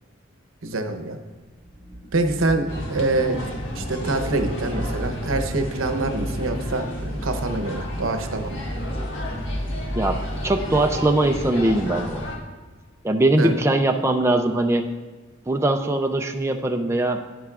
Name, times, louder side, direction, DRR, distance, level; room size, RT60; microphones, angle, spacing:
voice 1, 0.6-1.2 2.1-3.4 3.7-8.6 13.4-13.6, right 2 dB, 80° right, 7 dB, 0.9 m, -25 dB
sound 1, 1.6-12.2, equal, 30° right, 2.4 m, -34 dB
sound 2, 2.7-12.4, equal, 65° left, 1.6 m, -33 dB
voice 2, 10.0-12.2 13.0-14.9 15.5-17.2, right 2 dB, 15° right, 4 dB, 0.4 m, -21 dB
11.0 x 10.0 x 2.4 m, 1.3 s
head